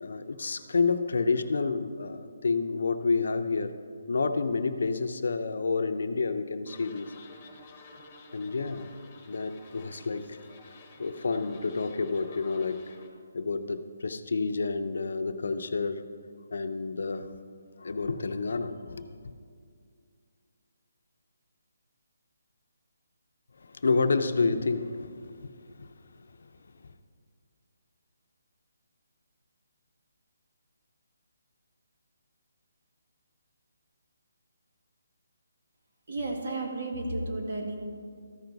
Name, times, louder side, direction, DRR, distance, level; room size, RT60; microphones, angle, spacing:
voice 1, 0.0-3.8 4.1-7.1 8.3-8.9 9.3-10.4 11.0-13.0 13.3-16.1 16.5-17.3 17.8-19.3 23.6-25.5 25.8-25.9, left 4 dB, 70° left, 9 dB, 0.6 m, -29 dB
sound 1, 6.7-13.1, left 2 dB, 25° left, 1.2 m, -52 dB
voice 2, 36.1-37.8, right 2 dB, 55° right, 1 dB, 1.7 m, -32 dB
14.0 x 5.8 x 4.0 m, 2.2 s
hypercardioid pair, 160°, 0 cm